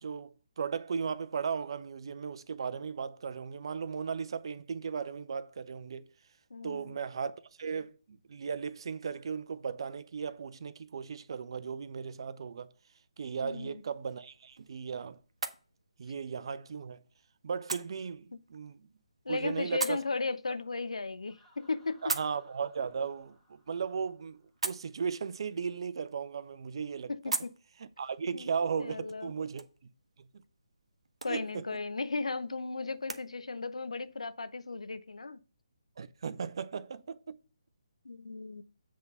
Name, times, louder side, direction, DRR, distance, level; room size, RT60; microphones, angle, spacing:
voice 1, 0.0-6.1 6.6-12.7 13.2-15.2 16.0-17.0 17.4-18.8 19.3-20.0 22.0-27.3 27.8-29.6 31.2-31.7 36.0-37.4, right 6 dB, 50° right, 0.6 m, -36 dB
voice 2, 6.5-7.0 13.4-13.8 19.2-22.1 27.1-27.5 28.3-28.5 28.8-29.3 31.2-35.4 38.0-38.6, left 3 dB, 80° left, 0.6 m, -36 dB
sound 1, 13.8-33.2, right 3 dB, 75° right, 0.9 m, -44 dB
Laughter, 21.3-25.0, left 1 dB, 10° left, 2.6 m, -66 dB
7.7 x 3.7 x 5.4 m
figure-of-eight pair, 150°, 3 cm